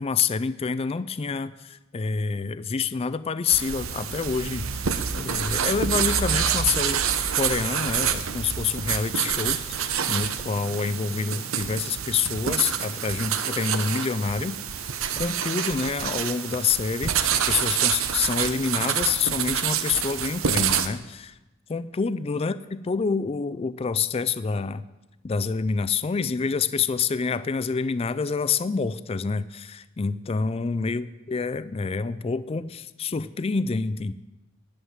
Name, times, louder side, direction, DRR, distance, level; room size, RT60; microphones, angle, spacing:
voice 1, 0.0-7.0 7.4-14.9 15.2-17.2 17.5-21.4 21.7-24.8 25.2-34.1, left 5 dB, 30° left, 15 dB, 0.4 m, -27 dB
sound 1, 3.5-20.9, right 8 dB, 85° right, 0.8 m, -27 dB
11.5 x 7.8 x 7.3 m, 1.0 s
head